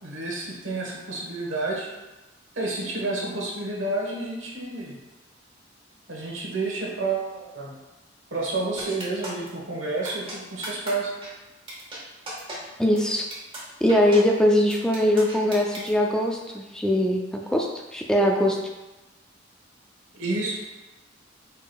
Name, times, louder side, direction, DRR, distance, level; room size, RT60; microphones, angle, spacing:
voice 1, 0.0-1.9 2.5-5.0 6.1-7.7 8.3-11.1 20.1-20.6, right 2 dB, 75° right, -2 dB, 1.2 m, -30 dB
sound 1, 8.8-9.5 10.0-10.3 10.6-10.9 11.2-11.3 11.7-12.0 12.3-12.6 13.0-13.1 13.3-13.6 13.9-14.2 14.7-15.9, right 2 dB, 30° right, 1.3 m, -36 dB
voice 2, 12.8-13.3 13.8-18.6, left 1 dB, 5° left, 0 dB, 0.3 m, -21 dB
4.8 x 4.6 x 2.3 m, 1.1 s
head